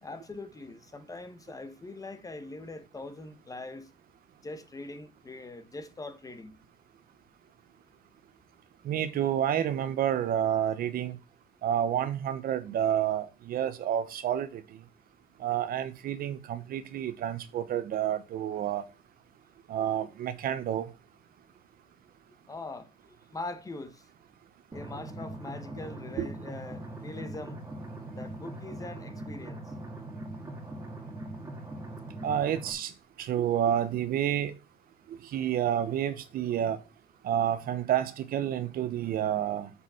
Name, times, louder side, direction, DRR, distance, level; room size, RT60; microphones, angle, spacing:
voice 1, 0.0-3.9 4.4-6.6 22.5-24.0 24.7-27.6 28.1-29.6, left 2 dB, 20° left, 1.2 m, -42 dB
voice 2, 8.8-11.2 11.6-14.6 15.4-18.8 19.7-20.9 26.2-26.3 32.2-32.9 33.2-34.5 35.3-36.8 37.2-39.7, right 10 dB, 60° right, 0.9 m, -29 dB
sound 1, 24.7-32.7, right 1 dB, 20° right, 2.0 m, -41 dB
6.3 x 5.8 x 5.7 m
cardioid pair, 110°, 17 cm